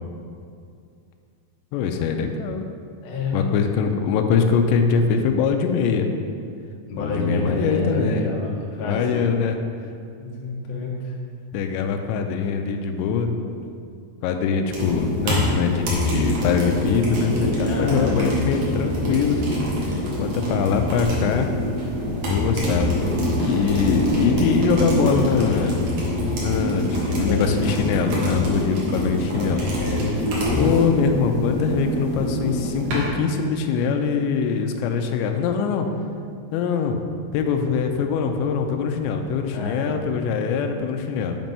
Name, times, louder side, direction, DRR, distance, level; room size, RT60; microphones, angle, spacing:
voice 1, 1.7-2.6 3.3-6.2 7.0-8.3 8.8-9.6 11.5-13.8 14.2-19.9 20.2-21.5 22.3-25.8 26.2-29.6 30.6-35.9 36.5-37.1 37.3-41.4, left 6 dB, 90° left, 5 dB, 2.9 m, -23 dB
voice 2, 3.0-3.5 6.9-9.4 10.2-11.2 17.6-18.2 23.3-23.8 26.9-27.6 29.4-30.7 39.5-39.9, left 2 dB, 70° left, -3 dB, 1.6 m, -29 dB
sound 1, 14.7-33.1, equal, 60° right, 2.2 m, -25 dB
7.6 x 5.2 x 5.4 m, 2.3 s
omnidirectional pair, 5.0 m